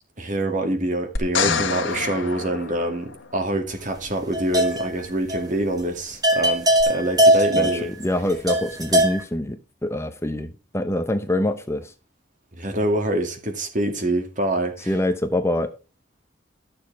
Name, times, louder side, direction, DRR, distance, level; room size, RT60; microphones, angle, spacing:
voice 1, 0.2-7.9 12.6-14.9, right 1 dB, 45° right, 2.3 m, -25 dB
sound 1, 1.2-3.5 6.8-6.9, left 6 dB, 75° left, 1.5 m, -27 dB
sound 2, 4.0-5.0 5.3-5.5 5.8-5.9 6.2-9.2, equal, 20° right, 1.8 m, -20 dB
voice 2, 7.6-11.9 14.9-15.7, left 1 dB, 15° left, 0.7 m, -25 dB
12.5 x 6.7 x 4.6 m
head